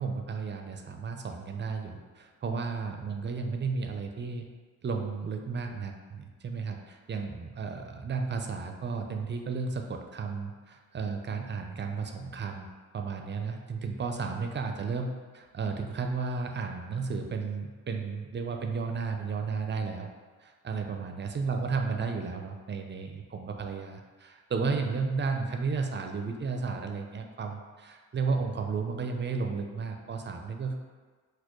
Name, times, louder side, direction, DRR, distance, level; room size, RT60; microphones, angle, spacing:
voice 1, 0.0-4.5 4.8-12.7 12.9-20.1 20.4-30.7, right 4 dB, 30° right, 4 dB, 0.4 m, -33 dB
4.2 x 2.2 x 3.0 m, 1.5 s
supercardioid pair, 60°, 37 cm